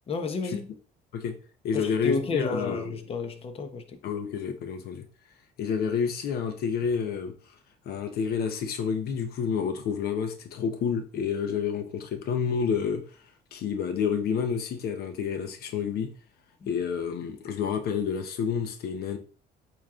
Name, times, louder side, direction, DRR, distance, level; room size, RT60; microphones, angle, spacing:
voice 1, 0.1-0.7 1.7-4.0, left 4 dB, 35° left, 0.9 m, -31 dB
voice 2, 1.6-2.9 4.0-5.1 5.6-7.3 7.9-13.0 13.5-16.1 16.7-19.2, left 6 dB, 70° left, 0.9 m, -29 dB
8.8 x 3.1 x 3.7 m
cardioid pair, 110°, 17 cm